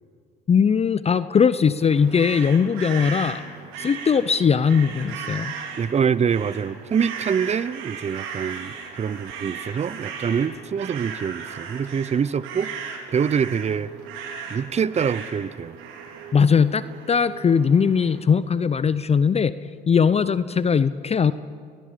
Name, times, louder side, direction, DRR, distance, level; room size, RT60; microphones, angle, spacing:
voice 1, 0.5-3.4 3.8-5.5 16.3-19.5 19.9-21.3, left 6 dB, 30° left, 15 dB, 0.7 m, -20 dB
sound 1, 1.8-18.2, right 6 dB, 75° right, 3.5 m, -37 dB
voice 2, 5.8-12.8 13.1-13.9 14.5-15.8, right 7 dB, 35° right, 19 dB, 0.8 m, -25 dB
30.0 x 20.5 x 5.1 m, 2.2 s
hypercardioid pair, 65°, 21 cm